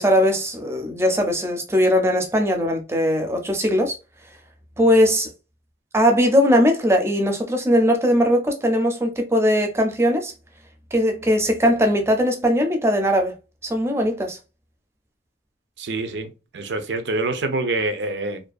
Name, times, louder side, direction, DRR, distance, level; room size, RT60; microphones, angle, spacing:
voice 1, 0.0-4.0 4.8-5.3 5.9-10.3 10.9-13.3 13.6-14.4, equal, 15° right, 0.4 m, -19 dB
voice 2, 15.8-18.4, right 2 dB, 85° right, 0.5 m, -26 dB
2.5 x 2.2 x 2.3 m
head